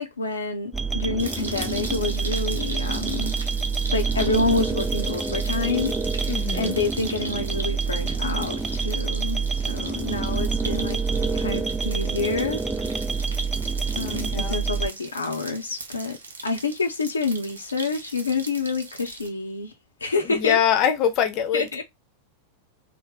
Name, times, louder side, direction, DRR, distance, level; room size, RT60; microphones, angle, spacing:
voice 1, 0.0-3.3 3.9-11.0 11.3-12.6 14.0-16.2 16.4-19.7 20.0-20.6 21.5-21.8, left 3 dB, 75° left, 0.6 m, -28 dB
sound 1, 0.7-14.9, right 4 dB, 10° right, 0.4 m, -27 dB
sound 2, 1.2-19.3, right 3 dB, 70° right, 0.7 m, -39 dB
voice 2, 6.2-6.8 14.1-14.6 20.2-21.8, left 9 dB, 40° left, 0.8 m, -24 dB
3.2 x 2.1 x 3.7 m
figure-of-eight pair, 90°, 0 cm